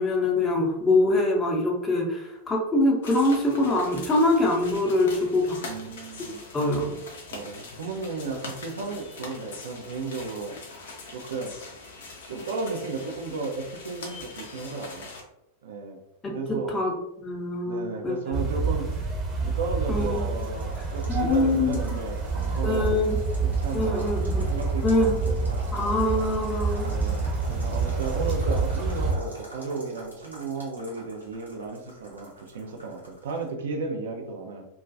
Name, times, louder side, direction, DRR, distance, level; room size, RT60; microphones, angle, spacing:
voice 1, 0.0-5.6 6.5-6.9 16.2-18.4 19.9-20.4 21.1-21.8 22.6-23.2 23.7-24.5 24.8-25.2 25.7-26.9, left 2 dB, 20° left, -1 dB, 0.6 m, -24 dB
sound 1, 3.0-15.2, left 3 dB, 60° left, 0.5 m, -42 dB
voice 2, 5.6-6.4 7.3-10.6 11.1-11.5 12.3-15.1 15.6-16.0 16.3-16.7 17.7-19.0 19.4-22.9 23.4-25.7 26.8-34.6, right 3 dB, 60° right, 3 dB, 0.4 m, -34 dB
sound 2, 18.3-29.1, right 4 dB, 25° right, 0.7 m, -28 dB
sound 3, 20.0-33.5, right 2 dB, 85° right, 0.8 m, -44 dB
2.3 x 2.2 x 2.5 m, 0.84 s
figure-of-eight pair, 90°, 0 cm